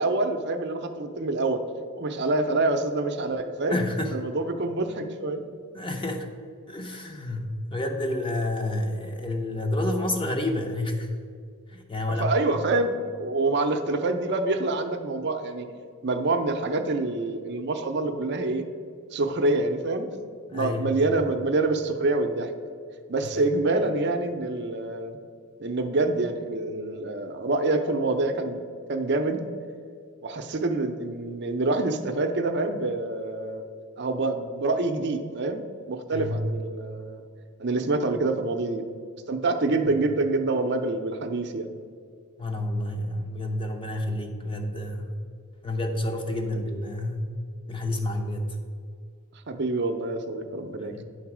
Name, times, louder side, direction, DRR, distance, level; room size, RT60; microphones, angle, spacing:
voice 1, 0.0-1.6 2.0-3.8 4.1-5.4 12.1-12.9 13.2-15.7 16.0-18.6 19.1-20.1 20.5-22.5 23.1-25.2 25.6-28.6 28.9-29.4 30.2-33.6 34.0-37.2 37.6-38.8 39.3-41.7 46.5-46.6 49.5-51.0, right 2 dB, 50° right, 6 dB, 0.6 m, -26 dB
voice 2, 3.7-4.1 5.7-6.3 6.7-11.1 11.7-12.3 20.5-21.0 36.1-36.5 42.4-45.1 45.6-47.3 47.7-48.5 50.9-51.0, left 1 dB, 25° left, 4 dB, 0.7 m, -29 dB
9.3 x 4.0 x 6.0 m, 2.2 s
head